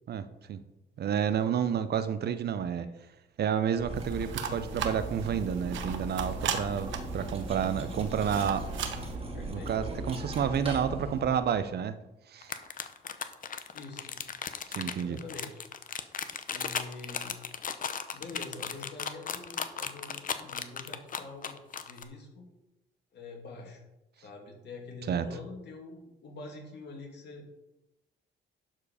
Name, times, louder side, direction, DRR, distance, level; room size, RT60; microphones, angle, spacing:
voice 1, 0.1-0.6 1.0-2.9 3.4-8.6 9.5-12.0 12.3-12.6 14.7-15.2 25.1-25.2, right 8 dB, 55° right, 12 dB, 0.6 m, -30 dB
Cutlery silverware, 3.7-11.5, right 1 dB, 30° right, 2.0 m, -38 dB
sound 1, 4.0-9.1, right 8 dB, 75° right, 1.0 m, -38 dB
voice 2, 9.3-9.7 13.7-14.2 14.7-15.6 16.5-17.4 18.1-21.6 21.8-22.5 23.1-23.8 24.2-27.5, left 3 dB, 60° left, 0 dB, 2.7 m, -45 dB
sound 2, 12.4-22.0, left 7 dB, 45° left, 0.8 m, -36 dB
12.0 x 4.7 x 4.9 m, 0.95 s
cardioid pair, 90°, 20 cm